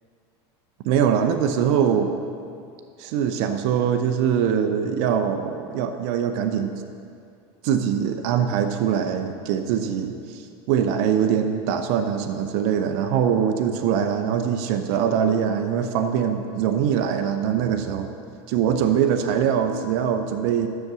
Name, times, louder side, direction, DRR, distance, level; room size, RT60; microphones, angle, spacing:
voice 1, 0.8-2.2 3.0-6.7 7.6-10.4 10.7-18.1 18.5-20.7, right 8 dB, 65° right, 7 dB, 0.8 m, -23 dB
11.0 x 6.8 x 6.2 m, 2.4 s
supercardioid pair, 110°, 14 cm